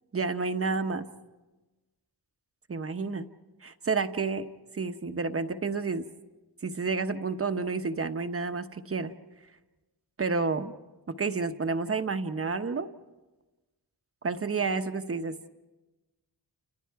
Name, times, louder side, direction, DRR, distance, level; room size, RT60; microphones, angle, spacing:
voice 1, 0.1-1.1 2.7-3.3 3.6-4.5 4.7-6.1 6.6-9.1 10.2-10.7 11.1-12.9 14.2-15.3, right 4 dB, 35° right, 8 dB, 0.9 m, -30 dB
30.0 x 29.5 x 4.7 m, 1.1 s
wide cardioid pair, 150°, 40 cm